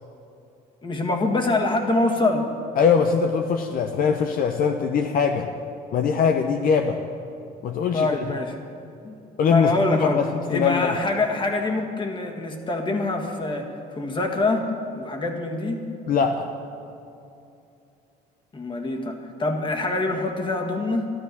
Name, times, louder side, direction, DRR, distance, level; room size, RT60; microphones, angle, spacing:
voice 1, 0.8-2.4 7.9-8.6 9.0-9.1 9.5-10.2 10.5-15.8 18.5-21.1, left 2 dB, 30° left, 3 dB, 1.8 m, -25 dB
voice 2, 2.8-5.5 5.9-7.0 7.6-8.1 9.4-11.0 16.1-16.5, left 6 dB, 60° left, 5 dB, 0.8 m, -22 dB
12.5 x 12.5 x 6.9 m, 2.7 s
cardioid pair, 110°, 17 cm